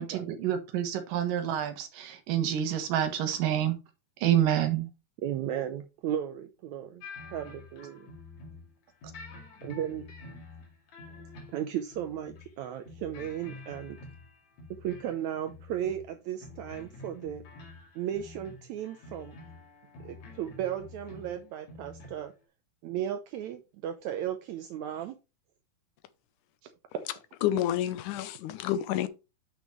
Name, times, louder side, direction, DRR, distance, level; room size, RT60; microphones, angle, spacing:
voice 1, 0.0-3.8 4.2-4.9, right 10 dB, 70° right, 2.8 m, -28 dB
voice 2, 5.2-7.0 7.3-8.1 9.6-10.1 11.5-14.0 14.8-17.4 17.9-19.3 20.0-22.3 22.8-25.2, right 10 dB, 90° right, 1.6 m, -35 dB
sound 1, 7.0-8.7 9.0-12.5 12.9-15.2 15.5-16.1 16.4-22.3, left 3 dB, 55° left, 3.2 m, -48 dB
voice 3, 27.4-29.1, left 11 dB, 75° left, 1.9 m, -29 dB
9.1 x 6.0 x 3.1 m
omnidirectional pair, 4.3 m